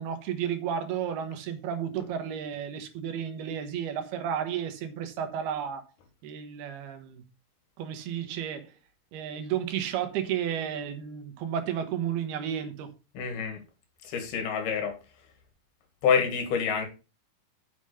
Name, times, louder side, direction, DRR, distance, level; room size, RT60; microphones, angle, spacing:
voice 1, 0.0-5.8 6.2-7.2 7.8-8.7 9.1-12.9, right 9 dB, 85° right, 3.3 m, -32 dB
voice 2, 13.2-13.6 14.0-15.0 16.0-16.9, left 6 dB, 80° left, 3.9 m, -27 dB
7.7 x 7.2 x 4.9 m
omnidirectional pair, 4.4 m